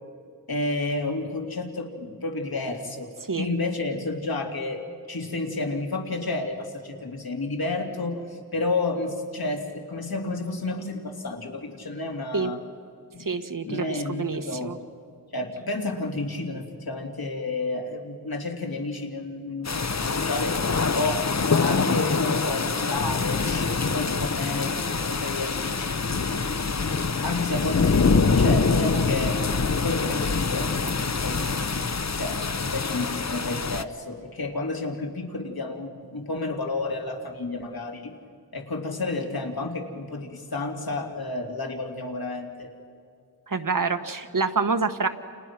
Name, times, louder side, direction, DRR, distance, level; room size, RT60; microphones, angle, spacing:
voice 1, 0.5-3.1 3.4-4.8 5.1-12.6 13.1-13.2 13.6-14.7 15.3-26.2 27.2-29.4 29.7-30.7 31.2-38.1 38.5-42.7, left 2 dB, 70° left, 2 dB, 3.1 m, -31 dB
voice 2, 13.2-14.8 43.5-45.1, right 4 dB, 55° right, 8 dB, 1.6 m, -27 dB
sound 1, 19.6-33.8, left 4 dB, 45° left, 1.0 m, -25 dB
30.0 x 29.5 x 6.1 m, 2.3 s
wide cardioid pair, 65°, 38 cm